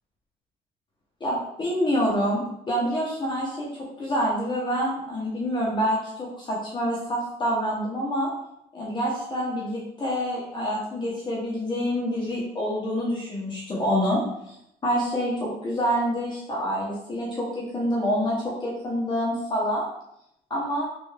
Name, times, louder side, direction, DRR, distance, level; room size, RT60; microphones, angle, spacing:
voice 1, 1.2-3.7 4.0-8.3 8.7-14.5 14.8-19.8 20.5-20.8, equal, 25° left, -5 dB, 0.9 m, -27 dB
3.3 x 2.6 x 3.2 m, 0.77 s
cardioid pair, 110°, 17 cm